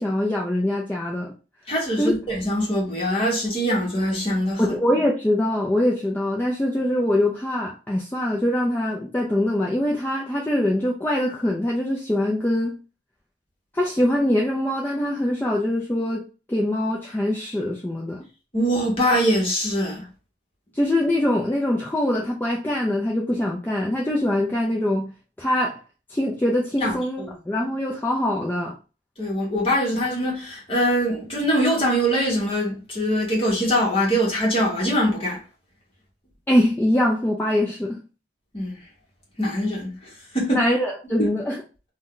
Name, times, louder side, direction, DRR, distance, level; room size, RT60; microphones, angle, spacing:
voice 1, 0.0-1.3 2.0-2.1 4.6-12.8 13.7-18.2 20.7-25.1 25.4-25.8 26.1-28.7 36.5-38.0 40.5-41.6, left 1 dB, 10° left, 0.4 m, -23 dB
voice 2, 1.7-4.6 18.5-20.0 26.8-27.3 29.2-35.4 38.5-38.8 39.4-40.6 41.2-41.3, equal, 30° left, 1.1 m, -23 dB
2.6 x 2.2 x 3.7 m
head